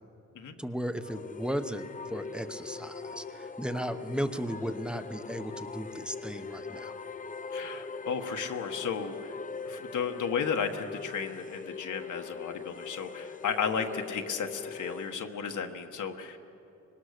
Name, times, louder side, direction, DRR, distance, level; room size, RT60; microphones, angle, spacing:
voice 1, 0.6-6.9, equal, 5° right, 9 dB, 0.9 m, -35 dB
sound 1, 1.0-15.2, left 4 dB, 25° left, 0.6 m, -41 dB
voice 2, 7.5-9.3 9.7-16.4, left 6 dB, 80° left, 4 dB, 1.4 m, -34 dB
24.5 x 21.0 x 6.6 m, 2.7 s
wide cardioid pair, 130°, 30 cm